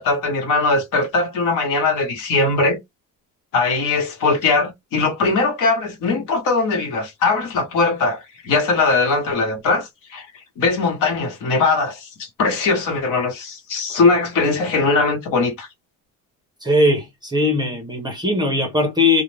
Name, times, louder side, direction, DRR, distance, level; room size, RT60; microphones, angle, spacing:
voice 1, 0.0-2.8 3.5-10.3 10.6-15.7, left 3 dB, 65° left, 1.1 m, -20 dB
voice 2, 16.6-19.2, left 2 dB, 15° right, 0.5 m, -19 dB
2.3 x 2.1 x 3.1 m
cardioid pair, 165°, 34 cm